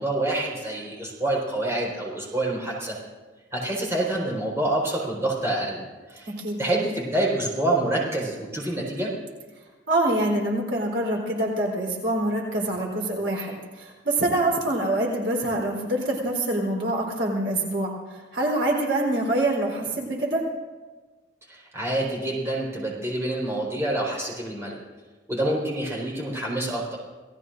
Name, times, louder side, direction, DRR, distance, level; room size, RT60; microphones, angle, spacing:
voice 1, 0.0-3.0 3.5-5.8 6.1-6.3 6.6-9.1 21.5-24.8 25.3-27.0, right 1 dB, 15° right, -4 dB, 4.7 m, -27 dB
voice 2, 6.3-6.6 9.9-20.5, right 1 dB, 75° right, -1 dB, 3.9 m, -25 dB
28.5 x 18.0 x 2.6 m, 1.3 s
head